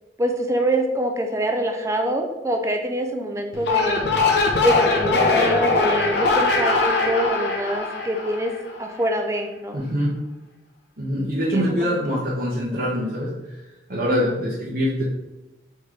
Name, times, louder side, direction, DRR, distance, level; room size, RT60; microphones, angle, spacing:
voice 1, 0.2-4.1 4.6-8.5 8.8-9.8 11.5-12.2 14.0-14.4, right 1 dB, 15° right, 4 dB, 0.4 m, -25 dB
sound 1, 3.5-8.9, left 3 dB, 65° left, 0.7 m, -21 dB
voice 2, 9.7-10.2 11.0-13.3 13.9-15.0, equal, 50° right, -6 dB, 0.8 m, -24 dB
4.3 x 3.7 x 3.2 m, 0.97 s
head